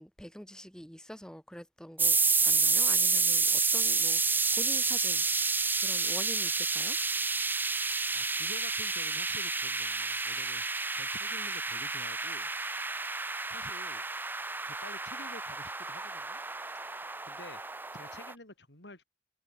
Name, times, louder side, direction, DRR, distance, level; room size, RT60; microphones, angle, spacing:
voice 1, 0.0-2.2 2.4-7.0, equal, 5° left, 3.7 m, -46 dB
sound 1, 2.0-18.3, right 4 dB, 10° right, 0.6 m, -30 dB
voice 2, 8.1-12.5 13.5-14.0 14.6-16.4 17.2-19.0, left 2 dB, 85° left, 5.2 m, -50 dB
head